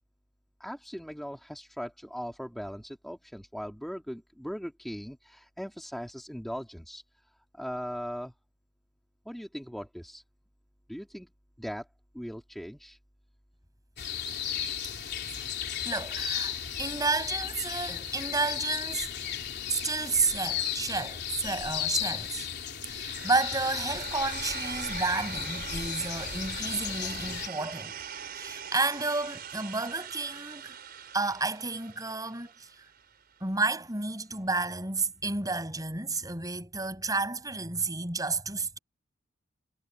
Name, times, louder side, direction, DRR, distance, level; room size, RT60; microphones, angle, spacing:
voice 1, 0.6-7.0 7.5-8.3 9.3-10.2 10.9-11.3 11.6-11.9 12.1-13.0, equal, ahead, 2.0 m, -39 dB
sound 1, 14.0-27.5, left 9 dB, 55° left, 3.5 m, -35 dB
voice 2, 15.8-16.5 16.8-19.1 19.7-22.5 22.9-28.0 28.3-30.8 31.1-32.7 33.4-38.8, right 3 dB, 20° right, 7.1 m, -31 dB
sound 2, 23.1-33.1, right 7 dB, 50° right, 5.1 m, -42 dB
head